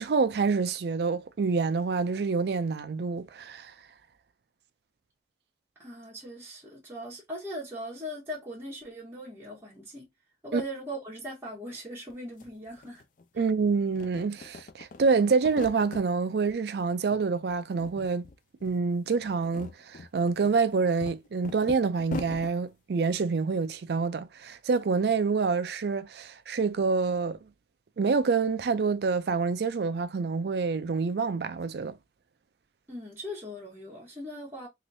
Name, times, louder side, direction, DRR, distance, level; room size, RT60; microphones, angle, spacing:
voice 1, 0.0-3.7 10.5-10.6 13.4-18.2 18.6-27.4 28.0-32.0, right 4 dB, 60° right, 0.4 m, -27 dB
voice 2, 5.8-10.1 10.4-13.0 13.3-13.4 32.9-34.7, equal, 15° right, 1.3 m, -39 dB
sound 1, 12.1-12.2 12.4-13.5 13.9-16.1 16.5-17.2 17.5-18.4 18.6-18.8 19.3-22.5, left 3 dB, 45° left, 0.4 m, -42 dB
3.0 x 2.9 x 2.7 m
head